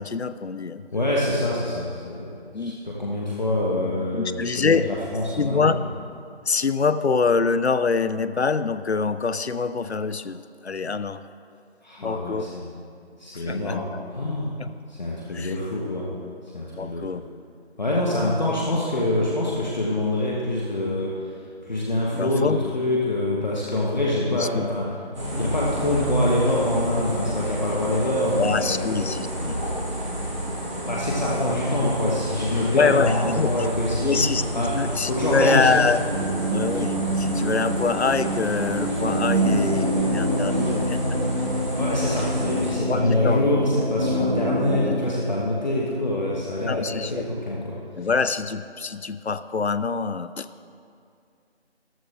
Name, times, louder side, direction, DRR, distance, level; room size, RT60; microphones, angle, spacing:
voice 1, 0.0-0.8 2.5-2.8 4.1-4.9 5.4-5.8 6.5-11.2 12.0-12.5 13.3-13.8 14.6-14.7 15.3-15.6 16.7-17.2 22.1-22.6 24.3-24.7 28.4-29.6 32.7-33.5 34.0-36.0 36.5-41.0 42.7-43.5 44.7-44.9 46.7-47.3 48.0-50.5, left 4 dB, 75° left, 13 dB, 0.6 m, -25 dB
voice 2, 0.9-5.8 11.8-12.8 13.2-14.5 14.9-16.1 16.5-17.2 17.8-21.3 21.6-24.9 25.3-29.2 30.8-34.3 34.5-34.7 35.1-35.9 41.8-48.1, left 1 dB, 40° left, -4 dB, 1.5 m, -25 dB
sound 1, 25.1-42.7, equal, 25° right, 2.5 m, -30 dB
sound 2, 36.1-45.0, equal, 45° right, 2.2 m, -25 dB
14.0 x 12.5 x 3.7 m, 2.4 s
figure-of-eight pair, 165°, 33 cm